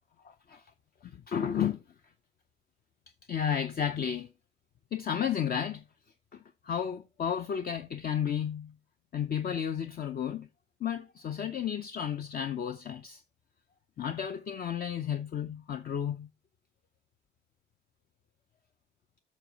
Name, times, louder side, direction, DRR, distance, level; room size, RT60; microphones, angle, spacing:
voice 1, 0.2-0.6 1.0-1.8 3.3-4.3 4.9-5.8 6.3-8.7 9.1-10.5 10.8-13.2 14.0-16.3, left 8 dB, 50° left, 0.7 m, -32 dB
12.0 x 6.4 x 2.8 m
cardioid pair, 90°, 20 cm